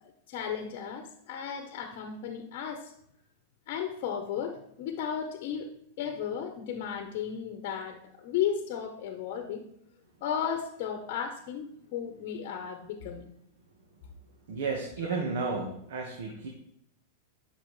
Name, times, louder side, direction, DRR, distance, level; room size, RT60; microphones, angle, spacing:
voice 1, 0.0-2.9 3.7-5.7 6.0-9.6 10.2-13.3, left 8 dB, 50° left, 5 dB, 1.0 m, -34 dB
voice 2, 14.5-16.5, right 4 dB, 75° right, 1 dB, 1.5 m, -32 dB
11.0 x 6.3 x 3.2 m, 0.73 s
supercardioid pair, 140°, 0 cm